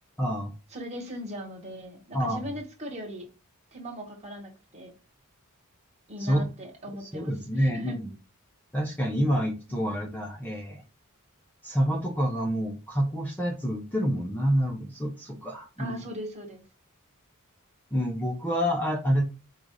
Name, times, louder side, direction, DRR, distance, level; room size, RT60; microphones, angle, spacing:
voice 1, 0.2-0.5 2.1-2.5 6.2-6.5 7.1-8.0 8.7-10.8 11.6-16.1 17.9-19.2, equal, 10° left, 0.6 m, -27 dB
voice 2, 0.7-3.3 3.7-4.9 6.1-8.0 15.8-16.6, equal, 30° right, 1.3 m, -39 dB
4.8 x 2.4 x 3.9 m
head